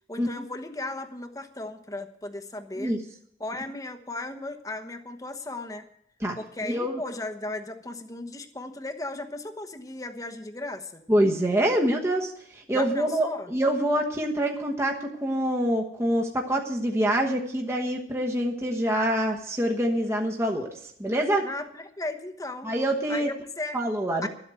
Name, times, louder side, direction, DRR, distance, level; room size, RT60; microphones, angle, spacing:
voice 1, 0.1-2.9 3.4-5.8 6.4-11.0 12.7-13.5 21.4-22.7 23.1-23.8 24.2-24.3, left 2 dB, 20° left, 7 dB, 1.0 m, -36 dB
voice 2, 6.6-7.0 11.1-20.7 21.0-21.5 22.6-23.3 23.7-24.3, right 1 dB, 15° right, 0 dB, 1.2 m, -25 dB
12.5 x 8.2 x 7.6 m, 0.70 s
head